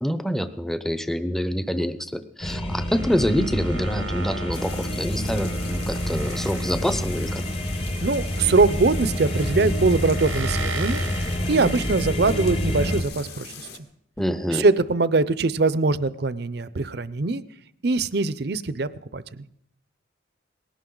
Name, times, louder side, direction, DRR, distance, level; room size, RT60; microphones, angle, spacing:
voice 1, 0.0-7.4 14.2-14.6, equal, ahead, 11 dB, 0.7 m, -26 dB
sound 1, 2.4-13.0, equal, 25° left, 1.1 m, -28 dB
sound 2, 2.9-12.5, right 5 dB, 90° right, 1.0 m, -39 dB
sound 3, 4.5-13.8, left 6 dB, 55° left, 1.8 m, -41 dB
voice 2, 8.0-11.0 11.5-13.5 14.5-17.4 17.8-19.4, right 3 dB, 55° right, 16 dB, 0.6 m, -22 dB
19.5 x 17.5 x 3.9 m, 0.78 s
head